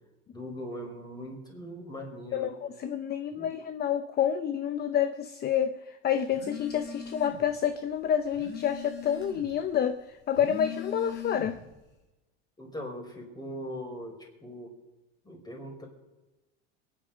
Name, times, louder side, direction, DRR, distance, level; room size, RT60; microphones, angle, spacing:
voice 1, 0.3-2.5 3.3-3.5 12.6-14.7 15.2-15.9, equal, 10° left, 4.9 m, -40 dB
voice 2, 2.3-11.6, left 9 dB, 30° left, 0.8 m, -29 dB
Telephone, 6.3-7.6 7.9-9.6 10.2-11.7, left 7 dB, 90° left, 5.8 m, -40 dB
23.5 x 10.0 x 5.2 m
supercardioid pair, 115°, 33 cm